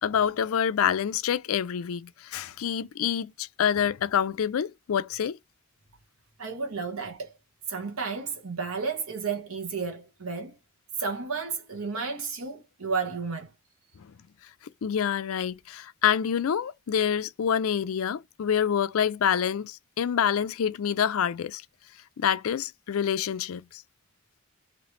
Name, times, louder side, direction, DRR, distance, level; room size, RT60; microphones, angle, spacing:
voice 1, 0.0-5.4 14.8-21.6 22.2-23.8, left 8 dB, 75° left, 0.4 m, -27 dB
voice 2, 6.4-7.3 7.7-10.6 11.0-13.5, right 5 dB, 85° right, 1.2 m, -32 dB
3.1 x 2.8 x 3.0 m
head